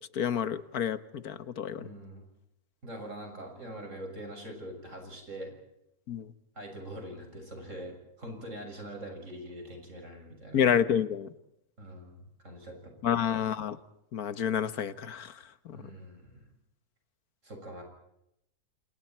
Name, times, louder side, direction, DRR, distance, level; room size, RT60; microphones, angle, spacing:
voice 1, 0.1-1.9 6.1-6.3 10.5-11.3 13.0-13.8 14.1-15.3, left 8 dB, 70° left, 12 dB, 1.7 m, -29 dB
voice 2, 1.8-2.2 2.8-5.5 6.6-10.6 11.8-12.2 12.4-13.4 15.7-16.5 17.4-17.8, right 1 dB, 50° right, 3 dB, 7.1 m, -43 dB
28.5 x 28.0 x 4.5 m, 0.81 s
omnidirectional pair, 1.7 m